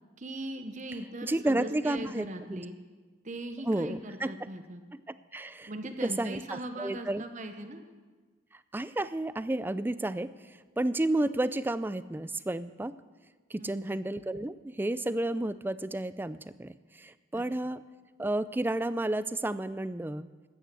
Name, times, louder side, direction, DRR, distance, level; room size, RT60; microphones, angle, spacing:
voice 1, 0.2-2.8 3.2-4.8 5.7-7.8 13.6-13.9 17.3-17.4, right 1 dB, 40° right, 7 dB, 0.9 m, -40 dB
voice 2, 1.2-2.6 3.6-4.3 5.3-5.7 6.0-7.2 8.7-12.9 13.5-17.8 18.2-20.3, right 1 dB, 10° right, 15 dB, 0.3 m, -31 dB
13.5 x 9.4 x 7.4 m, 1.4 s
head